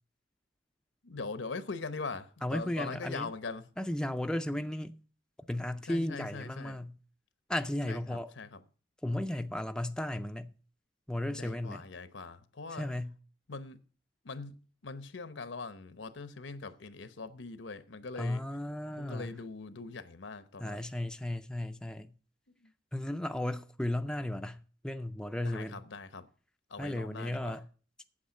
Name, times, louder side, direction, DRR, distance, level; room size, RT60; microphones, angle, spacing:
voice 1, 1.0-3.7 5.8-6.8 7.9-8.6 11.3-12.9 13.5-13.8 14.2-18.4 19.0-20.8 22.6-22.7 25.4-26.3 26.7-27.6, left 4 dB, 80° left, 0.9 m, -42 dB
voice 2, 2.4-3.3 3.8-4.9 5.5-7.0 7.5-8.3 9.0-10.5 11.1-11.8 12.7-13.1 18.2-19.3 20.6-22.1 22.9-25.8 26.8-27.6, left 1 dB, 5° left, 0.4 m, -35 dB
8.6 x 8.0 x 6.3 m
head